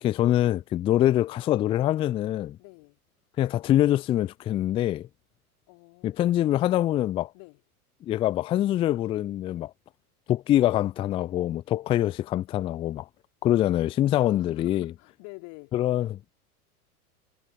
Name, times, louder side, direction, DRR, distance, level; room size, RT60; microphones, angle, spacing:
voice 1, 0.0-2.6 3.4-5.1 6.0-7.3 8.0-9.7 10.3-13.1 13.4-14.9 15.7-16.3, left 13 dB, 15° left, 0.5 m, -24 dB
voice 2, 2.6-3.0 5.7-6.4 7.3-7.6 14.1-15.7, left 34 dB, 40° left, 3.6 m, -48 dB
figure-of-eight pair, 95°, 45 cm